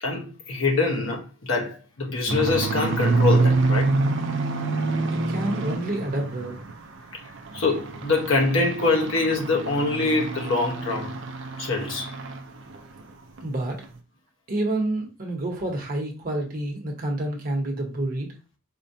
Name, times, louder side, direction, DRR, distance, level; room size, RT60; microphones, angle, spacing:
voice 1, 0.0-3.9 7.5-11.1 11.6-12.1, left 3 dB, 70° left, 0.8 m, -24 dB
sound 1, 2.3-6.8 7.2-12.4 12.7-13.0 13.4-13.5 13.8-13.9, right 3 dB, 60° right, 0.4 m, -26 dB
voice 2, 5.0-6.6 13.4-13.8 14.5-18.3, right 1 dB, 40° right, 0.8 m, -28 dB
4.4 x 2.1 x 2.6 m
head